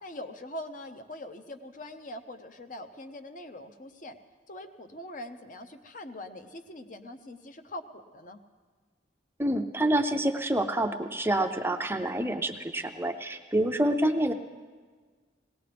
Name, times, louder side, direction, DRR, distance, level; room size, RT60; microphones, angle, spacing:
voice 1, 0.0-4.2 4.5-8.4, left 1 dB, 45° left, 9 dB, 0.8 m, -42 dB
voice 2, 9.4-14.3, right 1 dB, 15° right, 7 dB, 0.5 m, -27 dB
20.0 x 18.0 x 3.4 m, 1.5 s
head